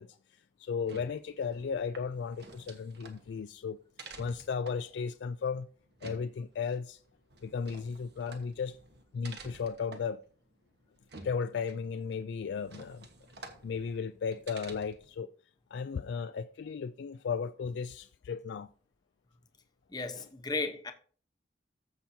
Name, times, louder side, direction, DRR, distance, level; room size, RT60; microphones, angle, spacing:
voice 1, 0.0-3.8 4.2-5.7 6.0-7.0 7.4-8.8 9.1-10.2 11.2-13.1 13.4-15.3 15.7-18.7 20.2-20.3, left 6 dB, 75° left, 0.3 m, -35 dB
sound 1, 0.7-15.2, right 3 dB, 65° right, 1.4 m, -52 dB
voice 2, 19.9-20.9, left 3 dB, 20° left, 0.9 m, -35 dB
14.5 x 5.8 x 2.8 m
head